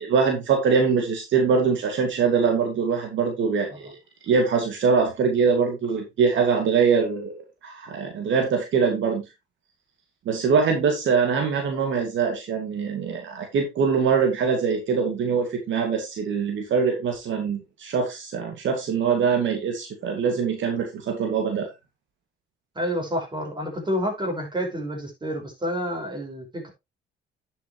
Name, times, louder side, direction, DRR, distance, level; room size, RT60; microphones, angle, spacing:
voice 1, 0.0-4.0 4.2-7.3 7.6-9.2 10.3-21.7, right 5 dB, 65° right, 2.3 m, -23 dB
voice 2, 22.8-26.7, equal, 20° right, 5.4 m, -29 dB
11.0 x 7.2 x 3.2 m
cardioid pair, 90°, 21 cm